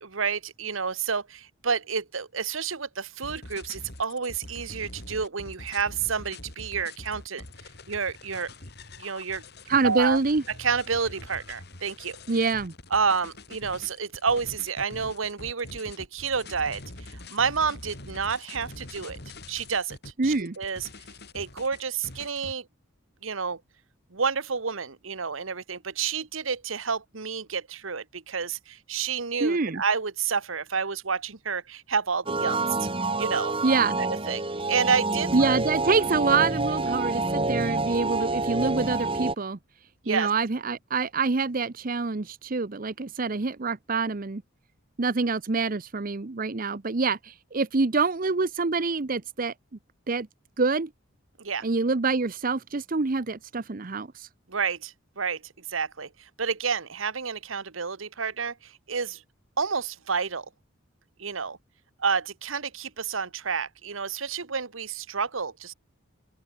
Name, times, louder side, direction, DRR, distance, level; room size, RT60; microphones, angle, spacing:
voice 1, 0.0-7.4 7.9-8.5 9.0-9.4 9.8-10.2 10.6-12.2 12.9-16.8 17.1-19.2 19.5-20.9 21.3-22.7 23.2-23.6 24.1-32.9 33.2-33.5 34.0-34.4 34.7-35.6 40.0-40.3 51.4-51.6 54.5-55.4 55.7-59.2 59.6-60.4 61.2-61.6 62.0-65.7, right 5 dB, 80° right, 1.3 m, -29 dB
sound 1, 3.2-22.5, left 2 dB, 55° left, 4.4 m, -44 dB
voice 2, 9.7-10.4 12.3-12.7 20.2-20.6 29.4-29.8 33.6-34.0 35.3-39.6 40.1-44.4 45.0-49.5 50.1-50.3 50.6-50.9 51.6-54.3, right 4 dB, 45° right, 0.7 m, -26 dB
sound 2, 32.3-39.3, right 3 dB, 25° right, 2.6 m, -28 dB
open air
head